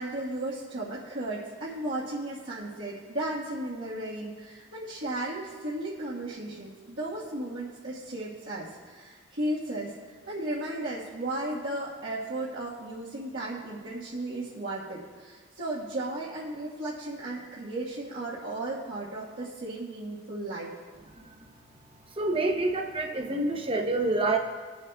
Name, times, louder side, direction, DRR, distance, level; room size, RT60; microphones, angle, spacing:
voice 1, 0.0-9.9 10.3-20.7, right 1 dB, 70° right, -9 dB, 1.4 m, -35 dB
voice 2, 22.2-24.4, right 2 dB, 30° right, 4 dB, 0.8 m, -27 dB
20.0 x 7.2 x 2.3 m, 1.5 s
head